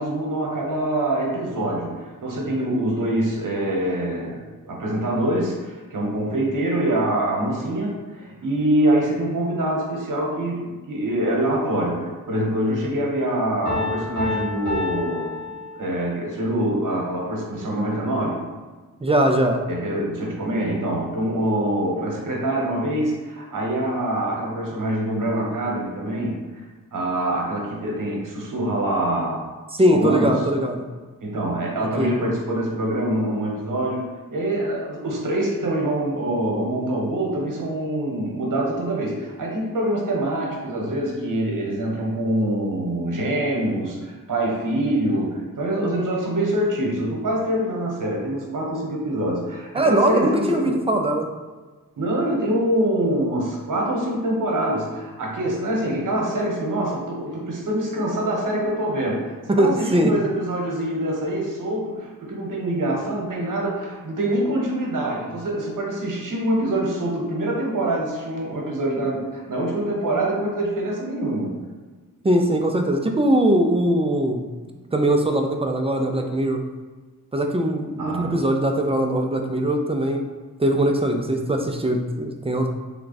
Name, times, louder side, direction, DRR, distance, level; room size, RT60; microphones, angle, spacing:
voice 1, 0.0-18.4 19.7-26.4 26.9-29.4 29.9-30.4 31.2-50.8 52.0-71.6 78.0-78.4, right 1 dB, 70° right, -2 dB, 1.0 m, -25 dB
Piano, 13.7-16.2, left 3 dB, 60° left, 1.3 m, -29 dB
voice 2, 19.0-19.6 29.7-30.9 32.0-32.2 49.7-51.3 59.5-60.1 72.2-74.5 74.9-76.6 77.3-80.2 80.6-82.7, right 1 dB, 20° right, 3 dB, 0.3 m, -21 dB
3.5 x 2.3 x 3.9 m, 1.3 s
wide cardioid pair, 100°, 34 cm